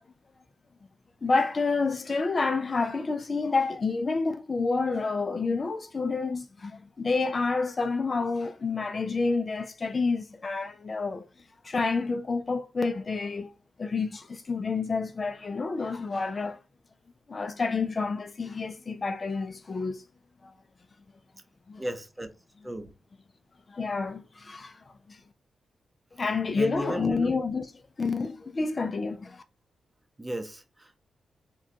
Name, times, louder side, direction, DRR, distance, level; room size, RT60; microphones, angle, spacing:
voice 1, 1.2-11.3 11.6-13.5 13.8-16.6 17.3-20.0 20.4-20.5 21.7-21.8 23.7-25.2 26.2-27.7 28.0-29.4, left 4 dB, 45° left, 0.5 m, -29 dB
voice 2, 21.8-22.3 22.6-22.9 26.6-27.4 30.2-31.0, right 1 dB, 20° right, 0.7 m, -35 dB
4.6 x 2.3 x 2.8 m
supercardioid pair, 55°, 0 cm